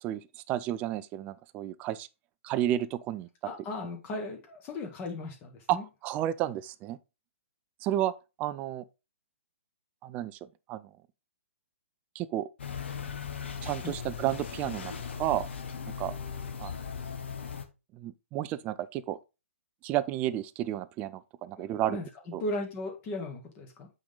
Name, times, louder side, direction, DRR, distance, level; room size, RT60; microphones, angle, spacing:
voice 1, 0.0-2.1 2.4-3.3 5.7-5.8 6.0-7.0 7.8-8.1 8.4-8.8 10.0-10.4 10.7-10.9 12.1-12.5 13.6-15.5 16.0-16.1 16.6-16.7 17.9-19.2 19.8-22.0 22.3-22.4, right 13 dB, 20° right, 0.4 m, -31 dB
voice 2, 3.4-5.8 13.8-13.9 21.6-22.1 22.4-23.9, left 2 dB, 25° left, 1.9 m, -37 dB
sound 1, 12.6-17.7, left 6 dB, 55° left, 1.1 m, -38 dB
8.4 x 3.9 x 3.9 m
figure-of-eight pair, 125°, 7 cm